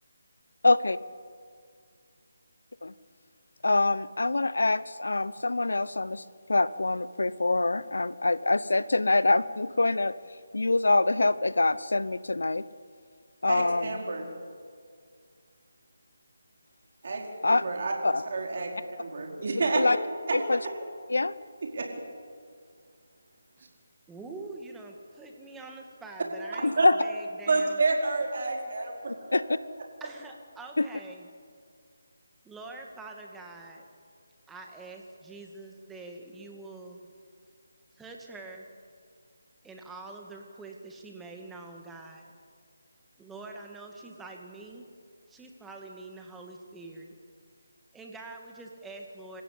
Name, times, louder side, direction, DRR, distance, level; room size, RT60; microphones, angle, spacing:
voice 1, 0.6-1.0 2.8-2.9 3.6-6.2 6.5-10.1 10.5-12.6 13.4-14.0 17.4-17.6 18.0-18.2 19.7-20.0 20.3-20.6 21.1-21.3 26.6-26.9 29.3-29.4 30.8-30.9, left 2 dB, 80° left, 17 dB, 0.9 m, -25 dB
voice 2, 13.4-14.3 17.0-17.9 18.3-19.8 20.3-20.4 21.6-21.9 26.8-26.9 27.5-29.4, right 3 dB, 50° right, 1 dB, 4.7 m, -29 dB
voice 3, 24.1-27.8 30.0-31.3 32.4-33.9 34.5-37.1 37.9-38.7 39.6-42.3 43.2-44.9 45.3-47.2 47.9-49.4, right 3 dB, 5° right, 2 dB, 1.9 m, -45 dB
27.0 x 15.5 x 8.6 m, 2.2 s
figure-of-eight pair, 165°, 0 cm